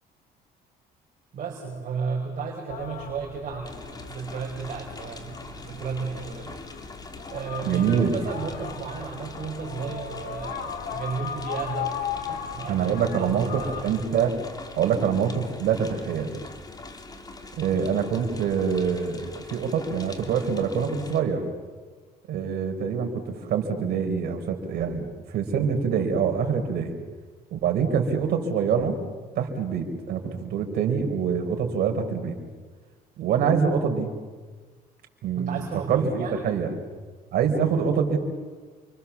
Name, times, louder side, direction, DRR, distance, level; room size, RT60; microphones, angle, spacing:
voice 1, 1.3-6.6 7.3-12.0 12.3-14.0 35.4-36.5, right 5 dB, 50° right, 0 dB, 5.3 m, -33 dB
sound 1, 2.7-14.0, left 8 dB, 60° left, 2.6 m, -37 dB
sound 2, 3.6-21.2, left 3 dB, 25° left, 2.9 m, -43 dB
voice 2, 7.7-8.1 12.7-13.5 13.8-14.3 14.8-16.3 17.6-21.4 22.3-26.9 27.5-29.0 29.3-32.4 33.2-34.1 35.2-36.7 37.3-38.2, right 7 dB, 70° right, 4 dB, 4.5 m, -25 dB
29.0 x 25.0 x 7.2 m, 1.4 s
cardioid pair, 110°, 17 cm